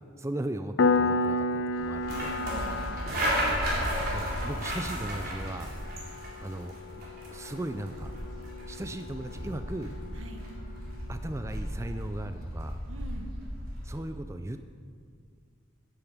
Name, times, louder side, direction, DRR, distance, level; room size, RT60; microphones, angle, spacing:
voice 1, 0.2-2.4 4.0-5.7 6.4-6.8 7.3-8.1 8.7-9.9 11.1-12.8 13.8-14.7, right 1 dB, 15° right, 9 dB, 0.4 m, -37 dB
Piano, 0.8-11.2, left 3 dB, 65° left, 0.5 m, -33 dB
sound 1, 1.7-14.0, equal, 50° right, 3.6 m, -34 dB
voice 2, 2.1-3.0 10.1-10.4 12.9-13.3, right 1 dB, 85° right, 5 dB, 1.4 m, -44 dB
10.5 x 8.7 x 8.0 m, 2.1 s
head